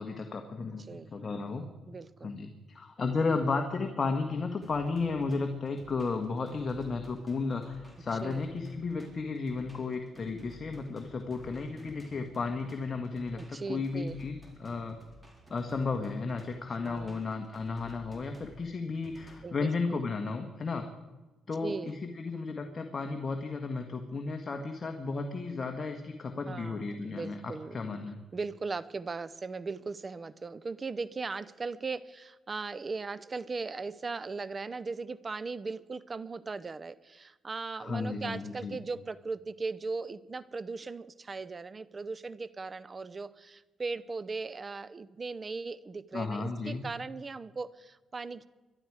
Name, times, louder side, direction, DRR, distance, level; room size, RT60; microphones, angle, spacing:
voice 1, 0.0-1.7 2.2-15.0 15.5-20.8 21.5-28.2 37.8-38.8 46.1-46.9, left 4 dB, 35° left, 4 dB, 1.6 m, -34 dB
voice 2, 1.9-2.3 8.2-8.4 13.4-14.2 16.8-17.2 19.4-20.0 21.6-21.9 26.5-27.8 28.3-48.5, right 4 dB, 30° right, 17 dB, 0.7 m, -38 dB
sound 1, 4.6-19.4, equal, 15° right, 4.0 m, -54 dB
23.0 x 12.0 x 4.9 m, 1.2 s
cardioid pair, 90°, 0 cm